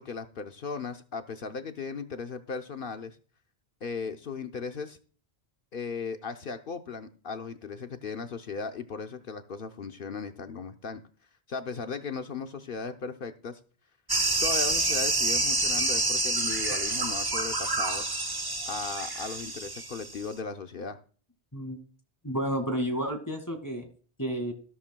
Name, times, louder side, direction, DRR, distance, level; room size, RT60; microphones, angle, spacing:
voice 1, 0.0-3.2 3.8-5.0 5.7-11.0 11.5-13.6 14.4-18.1 18.7-21.0, left 5 dB, 60° left, 7 dB, 0.9 m, -37 dB
sound 1, 14.1-20.2, right 2 dB, 25° right, 0.7 m, -28 dB
voice 2, 22.2-23.9 24.2-24.5, equal, 15° left, 6 dB, 1.9 m, -31 dB
13.5 x 13.0 x 2.2 m, 0.41 s
omnidirectional pair, 1.1 m